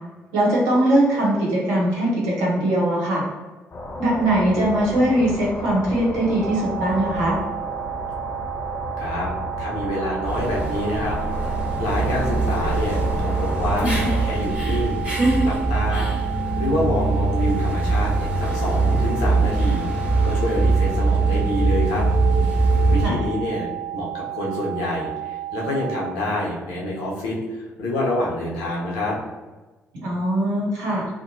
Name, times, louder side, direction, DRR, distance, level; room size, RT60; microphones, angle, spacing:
voice 1, 0.3-3.2 4.0-7.4 23.0-23.2 29.9-31.1, right 1 dB, 70° right, -4 dB, 0.8 m, -21 dB
sound 1, 3.7-14.3, left 2 dB, 35° left, 0.6 m, -33 dB
sound 2, 6.4-26.1, right 15 dB, 40° right, 0.3 m, -32 dB
voice 2, 9.0-9.3 9.6-13.9 14.2-15.0 15.4-16.1 16.6-19.8 20.2-22.1 22.9-23.7 23.9-29.2, left 1 dB, 70° left, -4 dB, 0.7 m, -27 dB
sound 3, 10.2-23.1, right 2 dB, 15° right, 1.4 m, -22 dB
2.6 x 2.1 x 2.7 m, 1.2 s
figure-of-eight pair, 40°, 7 cm